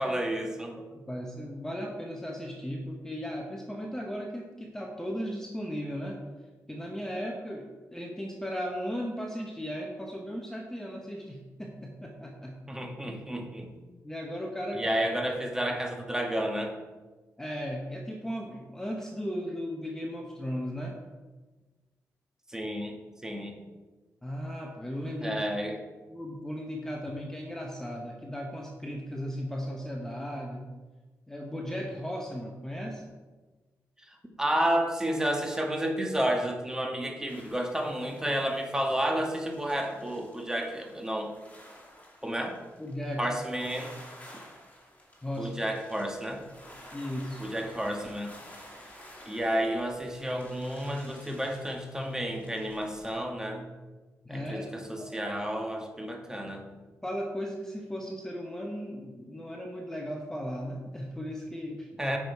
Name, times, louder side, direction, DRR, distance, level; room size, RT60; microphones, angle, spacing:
voice 1, 0.0-0.7 12.7-13.7 14.7-16.7 22.5-23.0 23.2-23.5 25.2-25.7 34.1-41.3 42.2-42.6 43.2-43.9 45.4-46.4 47.4-48.3 49.2-53.7 54.3-56.6 62.0-62.2, right 1 dB, 10° right, 2 dB, 1.4 m, -31 dB
voice 2, 0.9-6.2 6.7-12.5 14.0-15.0 17.4-21.0 24.2-25.4 26.1-30.7 31.3-33.0 42.8-43.3 45.2-45.5 46.9-47.4 54.2-54.7 55.0-55.2 57.0-61.9, equal, 10° left, 0 dB, 1.0 m, -36 dB
sound 1, 37.3-53.2, left 1 dB, 25° left, 2.5 m, -52 dB
8.7 x 6.2 x 4.7 m, 1.3 s
cardioid pair, 95°, 6 cm